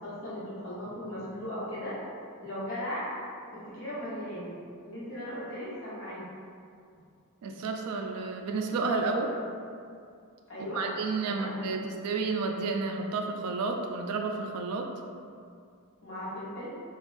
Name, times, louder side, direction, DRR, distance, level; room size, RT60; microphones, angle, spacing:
voice 1, 0.0-1.9 2.4-3.0 3.7-4.5 4.8-6.2 10.5-10.8 11.2-11.5 16.0-16.7, left 1 dB, 60° left, -10 dB, 1.1 m, -37 dB
voice 2, 7.4-9.3 10.6-14.9, right 4 dB, 75° right, 3 dB, 0.3 m, -31 dB
2.5 x 2.3 x 3.3 m, 2.4 s
head